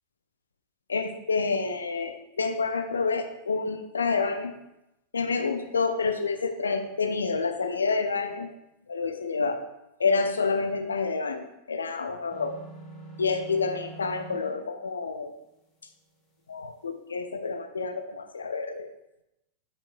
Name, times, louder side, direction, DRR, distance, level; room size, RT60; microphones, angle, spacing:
voice 1, 0.9-4.5 5.1-8.5 8.9-9.7 10.0-12.6 13.2-15.3 16.5-18.9, left 4 dB, 75° left, 8 dB, 0.6 m, -28 dB
sound 1, 12.3-14.6, right 2 dB, 20° left, 2.0 m, -44 dB
8.1 x 6.7 x 2.6 m, 0.89 s
figure-of-eight pair, 90°, 0 cm